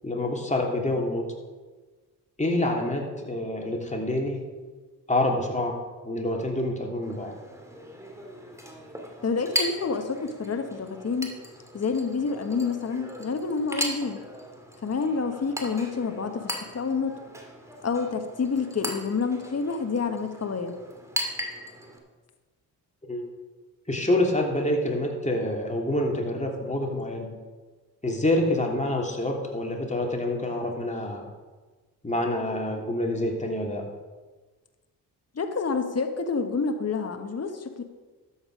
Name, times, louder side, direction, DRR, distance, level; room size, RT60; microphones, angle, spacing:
voice 1, 0.0-1.3 2.4-4.4 5.1-7.4 23.1-23.3 23.9-27.4 28.0-31.3 32.0-33.9, left 1 dB, 15° left, 0 dB, 3.1 m, -27 dB
Chink clink, 7.0-22.0, equal, 5° right, 2.7 m, -37 dB
voice 2, 9.2-11.3 11.7-14.2 14.8-17.2 17.8-20.8 35.3-37.8, left 4 dB, 35° left, 6 dB, 1.4 m, -28 dB
12.5 x 8.5 x 5.0 m, 1.3 s
hypercardioid pair, 45°, 46 cm